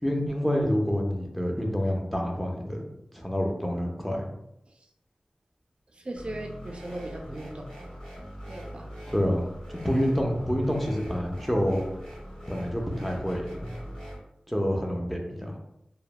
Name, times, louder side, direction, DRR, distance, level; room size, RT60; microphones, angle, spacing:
voice 1, 0.0-2.8 3.1-4.3 9.1-9.4 9.7-11.8 12.5-13.7 14.5-15.5, equal, 5° left, 1 dB, 0.5 m, -27 dB
voice 2, 5.9-7.9 8.5-8.9, right 1 dB, 45° right, 2 dB, 0.4 m, -38 dB
sound 1, 6.2-14.2, equal, 30° left, 1.3 m, -42 dB
3.0 x 2.1 x 2.2 m, 0.82 s
wide cardioid pair, 65°, 3 cm